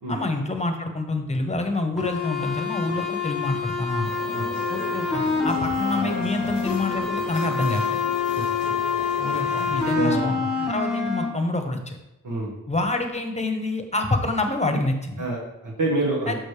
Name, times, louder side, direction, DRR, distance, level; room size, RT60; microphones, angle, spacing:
voice 1, 0.1-4.1 4.7-8.0 9.2-10.4 10.7-12.0 12.7-15.2 16.3-16.4, left 2 dB, 20° left, 5 dB, 1.0 m, -27 dB
sound 1, 2.0-11.2, left 5 dB, ahead, 1.7 m, -26 dB
sound 2, 4.0-10.0, left 6 dB, 80° left, 0.7 m, -36 dB
voice 2, 9.3-10.7 12.2-12.5 15.2-16.4, right 2 dB, 70° right, -4 dB, 1.5 m, -28 dB
6.2 x 6.2 x 3.4 m, 0.91 s
cardioid pair, 65°, 33 cm